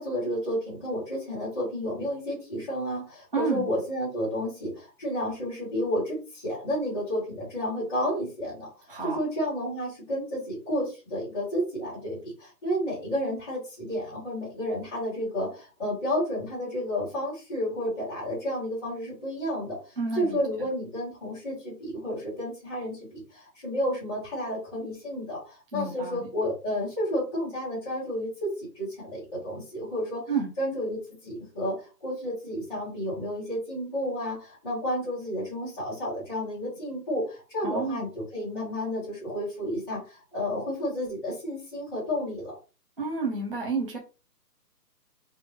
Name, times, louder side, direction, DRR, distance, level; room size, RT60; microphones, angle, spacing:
voice 1, 0.0-30.2 30.6-42.5, equal, 15° left, -11 dB, 1.0 m, -31 dB
voice 2, 3.3-3.7 8.9-9.3 20.0-20.4 25.7-26.3 30.3-30.5 37.6-38.0 43.0-44.0, right 4 dB, 35° right, -1 dB, 0.5 m, -30 dB
3.4 x 2.5 x 3.0 m, 0.33 s
hypercardioid pair, 170°, 50 cm